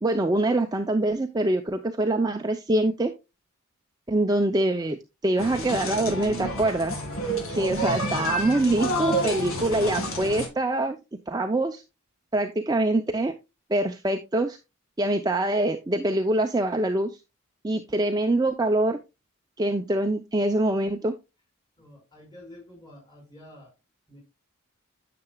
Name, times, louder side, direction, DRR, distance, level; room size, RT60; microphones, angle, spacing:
voice 1, 0.0-3.1 4.1-7.0 7.5-11.0 11.3-11.8 12.3-13.3 13.7-14.6 15.0-17.1 17.6-19.0 19.6-21.2, right 1 dB, 15° right, 0.5 m, -24 dB
sound 1, 5.4-10.5, right 1 dB, 70° left, 2.1 m, -29 dB
voice 2, 21.8-23.7 24.1-24.2, left 1 dB, 20° left, 4.9 m, -48 dB
9.8 x 6.8 x 2.3 m
head